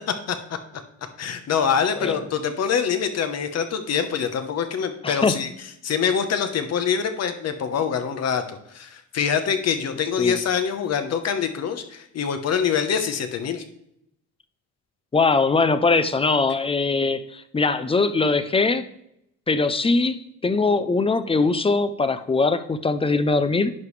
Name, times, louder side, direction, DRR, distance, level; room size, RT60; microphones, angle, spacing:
voice 1, 1.2-5.5 5.8-13.6, left 7 dB, 50° left, 8 dB, 1.0 m, -25 dB
voice 2, 5.0-5.4 10.2-10.4 15.1-18.9 19.5-23.7, left 3 dB, 15° left, 12 dB, 0.5 m, -21 dB
11.0 x 4.9 x 3.3 m, 0.77 s
cardioid pair, 95°, 32 cm